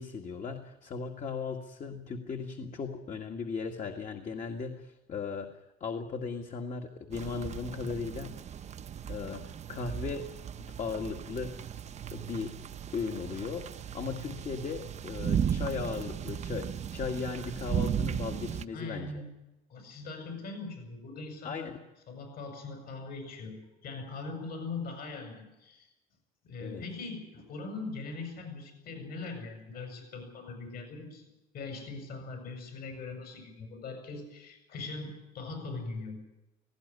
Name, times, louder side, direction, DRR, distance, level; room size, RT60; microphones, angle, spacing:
voice 1, 0.0-5.5 5.8-8.4 9.1-10.3 10.8-11.5 12.1-12.5 12.9-13.7 13.9-16.7 16.9-19.2 21.4-21.7 26.6-26.8, left 5 dB, 45° left, 3 dB, 2.0 m, -37 dB
sound 1, 7.1-18.7, right 8 dB, 40° right, 0.8 m, -36 dB
voice 2, 18.7-19.3 19.7-21.7 22.1-25.9 26.4-31.2 31.5-36.2, left 3 dB, 65° left, 4 dB, 7.2 m, -41 dB
18.0 x 17.0 x 9.9 m, 0.95 s
cardioid pair, 110°, 17 cm